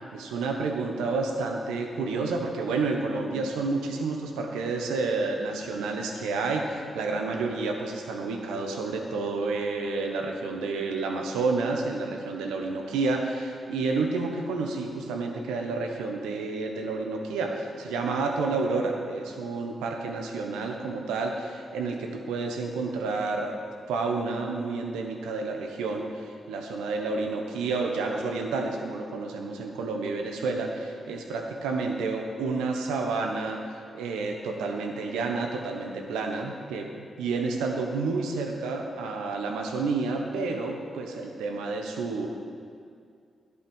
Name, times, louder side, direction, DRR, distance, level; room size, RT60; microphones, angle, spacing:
voice 1, 0.1-23.5 23.9-33.6 33.9-42.3, right 3 dB, 85° right, 2 dB, 1.1 m, -30 dB
11.5 x 8.4 x 5.5 m, 2.3 s
hypercardioid pair, 40°, 0 cm